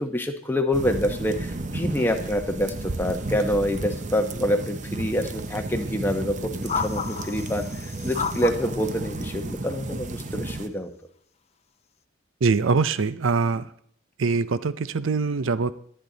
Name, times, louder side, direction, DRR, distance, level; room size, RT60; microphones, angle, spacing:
voice 1, 0.0-10.9, equal, 10° left, 4 dB, 1.0 m, -26 dB
sound 1, 0.7-10.7, right 2 dB, 40° right, 0.8 m, -33 dB
sound 2, 6.6-8.7 9.6-9.9, left 6 dB, 30° left, 0.6 m, -31 dB
voice 2, 12.4-13.7 14.2-15.7, right 4 dB, 75° right, 15 dB, 0.6 m, -23 dB
24.0 x 8.9 x 3.9 m, 0.66 s
head